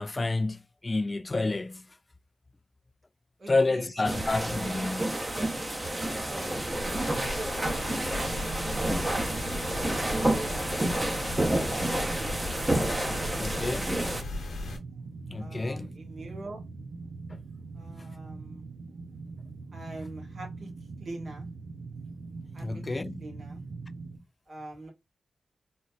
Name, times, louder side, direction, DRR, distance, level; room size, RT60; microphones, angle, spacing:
voice 1, 0.0-1.8 3.5-5.1 13.4-13.9 15.3-15.9 22.6-23.2, left 3 dB, 35° left, 0.3 m, -29 dB
voice 2, 3.4-4.9 6.3-6.9 7.4-9.5 13.0-13.6 13.9-14.2 15.4-16.6 17.7-18.6 19.7-20.7 21.0-21.5 22.5-22.8 23.2-23.6 24.5-24.9, right 2 dB, 65° right, 1.7 m, -44 dB
sound 1, 4.0-14.2, right 1 dB, 20° right, 0.9 m, -30 dB
sound 2, 6.8-14.8, left 2 dB, 80° left, 1.0 m, -38 dB
sound 3, 8.2-24.2, right 3 dB, 85° right, 0.5 m, -42 dB
3.8 x 2.1 x 2.4 m
cardioid pair, 45°, 0 cm